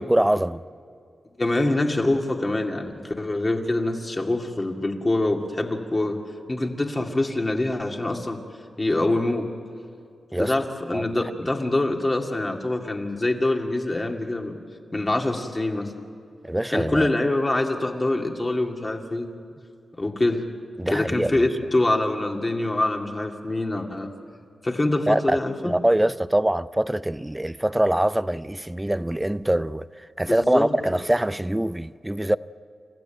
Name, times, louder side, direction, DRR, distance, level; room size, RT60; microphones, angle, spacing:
voice 1, 0.1-0.6 10.3-10.5 10.9-11.5 16.4-17.1 20.8-21.5 25.1-25.4 25.6-32.4, right 1 dB, 10° right, 0.5 m, -24 dB
voice 2, 1.4-6.2 6.5-8.4 8.8-9.5 10.4-14.6 14.9-15.9 16.7-19.3 20.0-20.4 20.9-24.1 24.6-25.7 30.3-30.7, left 2 dB, 25° left, 2.4 m, -25 dB
28.5 x 15.5 x 9.1 m
wide cardioid pair, 105°, 0 cm